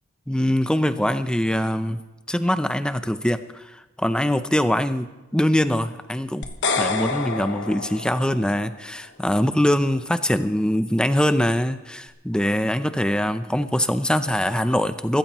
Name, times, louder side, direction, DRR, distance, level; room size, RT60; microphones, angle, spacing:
voice 1, 0.3-2.0 2.3-6.5 6.8-15.2, left 1 dB, 5° left, 10 dB, 0.6 m, -23 dB
sound 1, 6.4-8.7, left 4 dB, 60° left, 1.2 m, -27 dB
24.5 x 14.5 x 3.1 m, 1.1 s
head